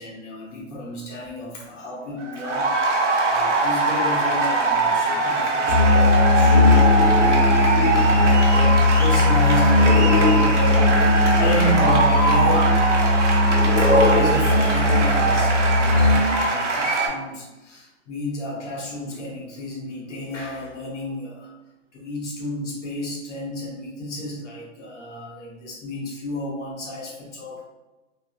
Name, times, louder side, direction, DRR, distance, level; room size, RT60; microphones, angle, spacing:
voice 1, 0.0-2.7 3.2-7.7 8.2-10.9 11.3-12.8 13.9-21.5 21.9-27.6, left 1 dB, 65° left, -4 dB, 1.1 m, -31 dB
sound 1, 2.1-17.1, right 3 dB, 65° right, 0.8 m, -22 dB
Musical instrument, 5.7-16.5, left 2 dB, 85° left, 0.8 m, -18 dB
3.5 x 2.0 x 2.3 m, 1.1 s
hypercardioid pair, 180°, 38 cm